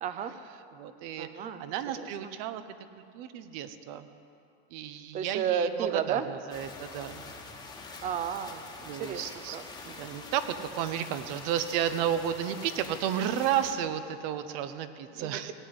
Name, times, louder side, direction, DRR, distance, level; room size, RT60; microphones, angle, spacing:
voice 1, 0.0-0.3 1.2-1.6 2.0-2.1 5.1-6.3 8.0-8.6 9.0-9.2 9.5-9.6 15.2-15.5, right 8 dB, 25° right, 11 dB, 0.6 m, -32 dB
voice 2, 0.7-2.6 3.0-4.1 4.7-7.2 8.9-9.6 9.8-15.5, right 10 dB, 50° right, 11 dB, 0.9 m, -33 dB
sound 1, 6.5-13.7, left 3 dB, 15° left, 1.4 m, -45 dB
16.5 x 9.6 x 8.1 m, 2.6 s
cardioid pair, 170°, 30 cm